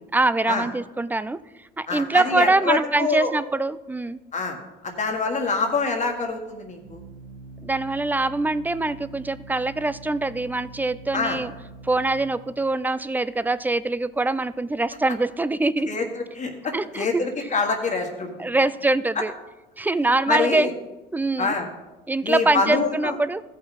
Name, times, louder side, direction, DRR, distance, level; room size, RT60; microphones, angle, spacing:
voice 1, 0.1-1.4 1.8-4.2 7.6-11.5 11.8-15.9 16.7-17.2 18.4-19.3 19.8-20.7 21.1-21.5 22.1-23.4, right 2 dB, 10° right, 16 dB, 0.3 m, -23 dB
voice 2, 1.9-3.3 4.3-4.6 4.8-7.0 11.1-11.4 15.9-18.6 20.3-20.7 21.4-21.7 22.2-23.2, left 4 dB, 40° left, 3 dB, 1.5 m, -26 dB
Organ, 4.9-15.4, right 2 dB, 75° right, 2.4 m, -45 dB
14.5 x 5.7 x 4.1 m, 1.1 s
supercardioid pair, 85°, 20 cm